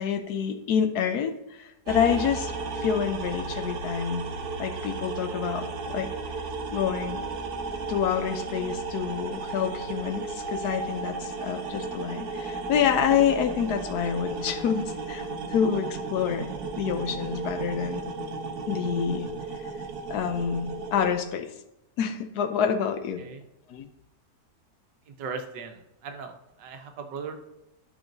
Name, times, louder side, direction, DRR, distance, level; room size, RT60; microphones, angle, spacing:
voice 1, 0.0-4.3 4.6-6.1 6.7-7.2 7.9-18.0 18.7-19.3 20.1-21.5 22.0-23.2 23.7-23.9, left 8 dB, 70° left, 8 dB, 1.1 m, -27 dB
sound 1, 1.9-21.1, right 3 dB, 65° right, 1.4 m, -34 dB
voice 2, 25.1-27.4, right 5 dB, 90° right, 5 dB, 1.6 m, -38 dB
12.0 x 5.8 x 2.6 m, 0.91 s
omnidirectional pair, 1.9 m